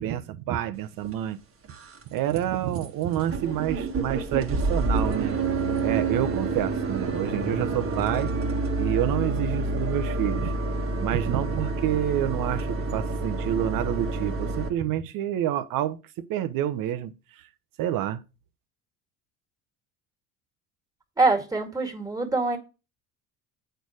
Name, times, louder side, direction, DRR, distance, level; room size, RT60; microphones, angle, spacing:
voice 1, 0.0-1.4 2.1-5.4 5.8-8.3 8.8-10.5 11.0-17.1 17.8-18.2, right 12 dB, 60° right, 1.0 m, -28 dB
sound 1, 1.0-1.1 1.6-2.0 2.3-2.4 2.8-2.9 3.1-14.7, right 3 dB, 35° right, 1.5 m, -28 dB
voice 2, 21.2-22.6, right 3 dB, 10° right, 2.1 m, -24 dB
7.9 x 4.6 x 5.0 m
supercardioid pair, 95°, 38 cm